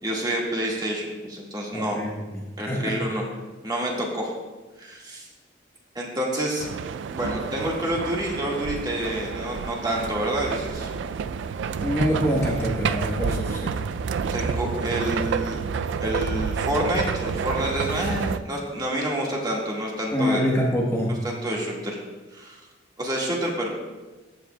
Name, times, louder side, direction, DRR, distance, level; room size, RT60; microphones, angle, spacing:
voice 1, 0.0-2.0 2.6-3.2 3.6-4.3 4.8-5.3 5.9-6.7 7.1-10.9 14.3-15.6 16.0-20.4 21.2-22.0 22.3-22.5 23.0-23.7, right 1 dB, 20° right, -3 dB, 1.6 m, -28 dB
voice 2, 1.7-3.0 11.8-13.8 20.1-21.2, equal, 15° left, -3 dB, 1.0 m, -25 dB
sound 1, 6.6-18.4, right 6 dB, 70° right, 0.3 m, -29 dB
14.5 x 7.5 x 2.2 m, 1.2 s
head